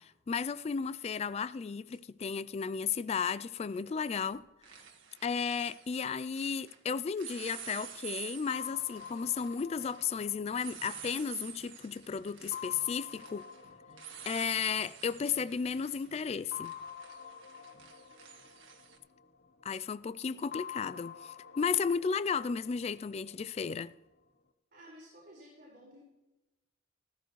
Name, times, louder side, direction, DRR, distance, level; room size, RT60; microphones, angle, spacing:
voice 1, 0.0-4.4 5.2-13.4 14.2-16.7 19.6-23.9, left 6 dB, 35° left, 0.3 m, -34 dB
sound 1, 1.9-2.0 3.8-4.1 4.3-6.8 7.2-19.0, right 9 dB, 85° right, 1.6 m, -49 dB
sound 2, 8.5-11.8 12.5-15.4 16.5-19.6 20.5-23.6, left 8 dB, 55° left, 0.8 m, -48 dB
voice 2, 24.7-26.0, equal, 55° right, 4.8 m, -54 dB
14.5 x 14.5 x 3.1 m
head